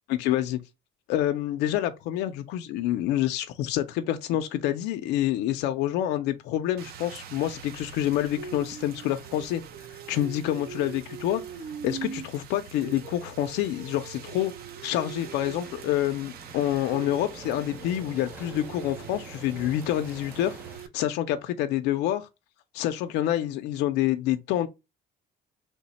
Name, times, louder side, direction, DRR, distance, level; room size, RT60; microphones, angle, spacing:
voice 1, 0.1-0.6 1.1-9.6 9.9-11.4 11.8-14.5 14.8-22.3 22.7-24.7, left 12 dB, 85° left, 0.4 m, -27 dB
Rain, 6.8-20.9, right 8 dB, 65° right, 0.5 m, -42 dB
sound 1, 15.1-20.8, right 2 dB, 10° right, 0.6 m, -47 dB
3.2 x 2.1 x 4.0 m
cardioid pair, 110°, 17 cm